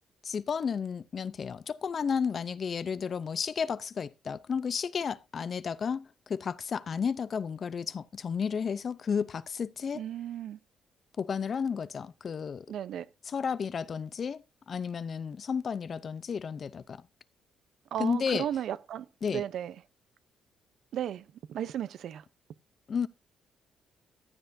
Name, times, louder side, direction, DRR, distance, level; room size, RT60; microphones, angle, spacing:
voice 1, 0.2-10.0 11.2-12.7 13.3-17.0 18.0-18.5 19.2-19.4 22.9-23.1, left 6 dB, 50° left, 0.5 m, -32 dB
voice 2, 9.9-10.6 12.7-13.1 17.9-19.7 20.9-22.2, right 10 dB, 70° right, 0.6 m, -35 dB
15.0 x 10.5 x 2.6 m
cardioid pair, 90°, 0 cm